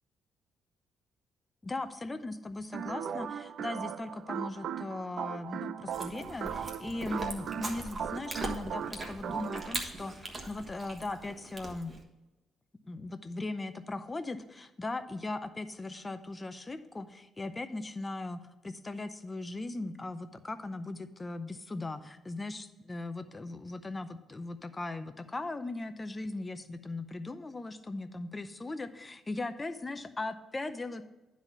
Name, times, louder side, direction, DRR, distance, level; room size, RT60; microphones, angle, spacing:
voice 1, 1.6-11.9 12.8-31.0, left 2 dB, 20° left, 11 dB, 0.6 m, -39 dB
sound 1, 2.7-9.8, right 8 dB, 65° right, 0.4 m, -38 dB
Chewing mastication, 5.9-12.0, right 2 dB, 30° right, 1.3 m, -41 dB
9.6 x 4.1 x 6.0 m, 1.1 s
cardioid pair, 90°, 0 cm